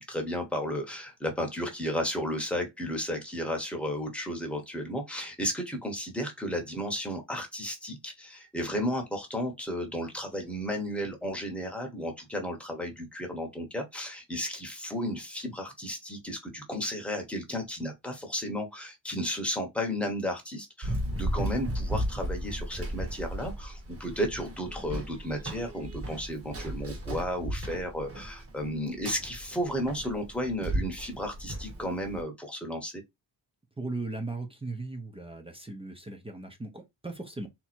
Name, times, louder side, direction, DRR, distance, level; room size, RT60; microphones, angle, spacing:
voice 1, 0.1-33.0, equal, 5° left, 1.0 m, -33 dB
Run, 20.8-32.2, equal, 30° right, 1.2 m, -35 dB
voice 2, 33.8-37.5, right 2 dB, 15° right, 0.7 m, -37 dB
3.5 x 2.9 x 4.3 m
wide cardioid pair, 170°, 44 cm